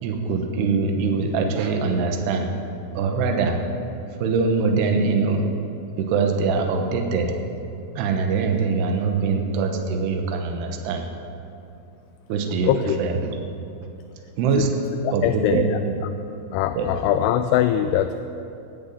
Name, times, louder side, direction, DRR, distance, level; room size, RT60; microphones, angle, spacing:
voice 1, 0.0-2.5 2.9-3.6 4.2-5.4 6.0-7.4 8.0-11.0 12.3-12.7 13.0-13.3 14.4-14.7 15.1-15.9 16.8-16.9, right 4 dB, 70° right, 4 dB, 3.1 m, -23 dB
voice 2, 12.7-13.0 14.6-14.7 15.0-15.7 16.5-18.2, left 11 dB, 85° left, 9 dB, 2.4 m, -22 dB
17.0 x 13.5 x 5.6 m, 2.7 s
omnidirectional pair, 5.2 m